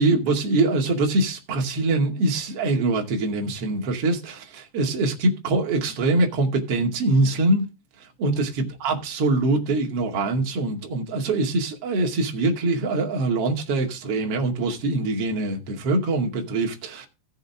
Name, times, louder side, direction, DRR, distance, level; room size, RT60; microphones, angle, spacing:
voice 1, 0.0-7.7 8.2-17.1, right 2 dB, 40° right, 2.6 m, -23 dB
16.0 x 7.9 x 3.6 m
omnidirectional pair, 5.2 m